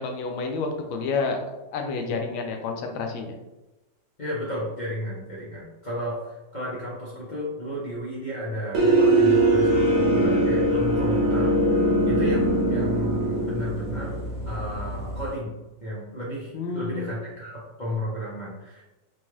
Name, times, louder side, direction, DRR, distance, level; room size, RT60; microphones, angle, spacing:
voice 1, 0.0-3.4 16.5-17.1, left 4 dB, 90° left, 3 dB, 1.4 m, -29 dB
voice 2, 4.2-15.5 15.8-18.8, equal, 45° left, -7 dB, 0.5 m, -33 dB
sound 1, 8.7-15.3, right 1 dB, 55° right, 1.1 m, -22 dB
4.0 x 2.3 x 3.1 m, 1.0 s
omnidirectional pair, 2.0 m